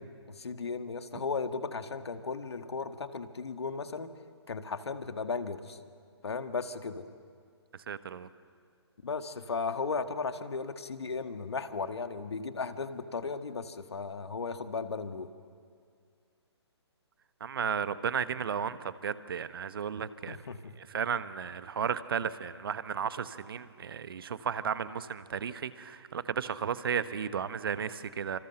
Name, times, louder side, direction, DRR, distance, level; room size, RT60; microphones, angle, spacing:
voice 1, 0.0-4.1 4.5-5.8 6.2-7.0 9.0-15.3 20.3-20.7, left 4 dB, 65° left, 9 dB, 1.7 m, -36 dB
voice 2, 7.9-8.3 17.4-20.4 20.9-28.4, right 7 dB, 55° right, 13 dB, 1.2 m, -34 dB
27.5 x 27.0 x 6.7 m, 2.2 s
figure-of-eight pair, 135°, 14 cm